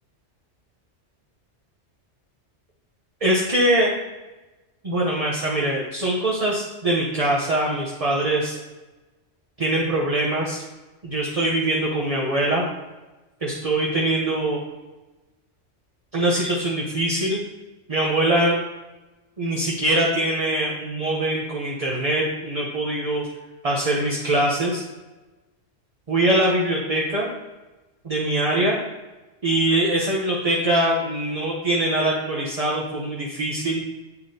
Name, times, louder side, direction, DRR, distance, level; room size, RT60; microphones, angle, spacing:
voice 1, 3.2-3.9 4.8-8.6 9.6-10.6 11.0-12.6 13.4-14.6 16.1-17.4 17.9-18.6 19.4-23.3 23.6-24.8 26.1-27.3 28.0-28.8 29.4-33.8, right 1 dB, 35° right, -3 dB, 0.9 m, -22 dB
8.5 x 6.7 x 2.8 m, 1.1 s
omnidirectional pair, 1.2 m